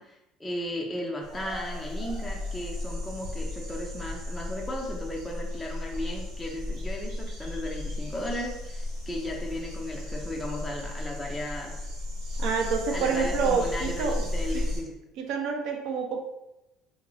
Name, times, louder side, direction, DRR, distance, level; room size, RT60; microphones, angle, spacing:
voice 1, 0.0-11.9 12.9-14.9, left 1 dB, 5° left, -1 dB, 0.4 m, -35 dB
sound 1, 1.2-14.8, left 1 dB, 85° right, 1.2 m, -34 dB
voice 2, 12.4-14.2 15.2-16.2, right 5 dB, 60° right, 3 dB, 0.5 m, -28 dB
3.9 x 2.5 x 3.0 m, 0.93 s
cardioid pair, 170°, 0 cm